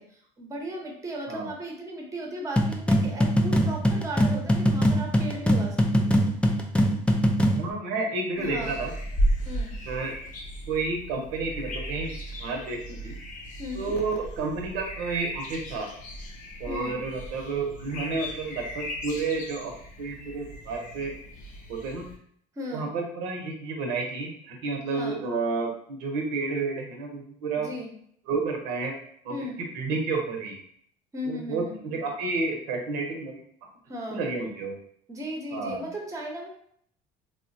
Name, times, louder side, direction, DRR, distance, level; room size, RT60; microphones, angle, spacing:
voice 1, 0.0-6.1 8.4-8.8 9.5-9.8 13.6-13.9 16.7-17.0 22.6-22.9 24.9-25.2 27.6-27.9 29.3-29.6 31.1-31.8 33.9-34.3 35.1-36.5, equal, 20° right, 0 dB, 0.7 m, -36 dB
sound 1, 2.6-7.7, equal, 5° left, 0.4 m, -22 dB
voice 2, 7.5-8.9 9.8-10.1 10.7-12.1 12.4-13.2 13.7-15.9 16.6-19.7 20.0-21.1 21.7-22.1 22.7-27.7 28.3-29.0 29.2-29.3 29.7-30.6 31.2-33.4 34.1-34.8 35.5-35.9, right 3 dB, 85° right, 1 dB, 0.7 m, -30 dB
sound 2, 8.3-22.2, equal, 50° left, 0.7 m, -35 dB
3.3 x 2.1 x 2.6 m, 0.65 s
supercardioid pair, 100°, 17 cm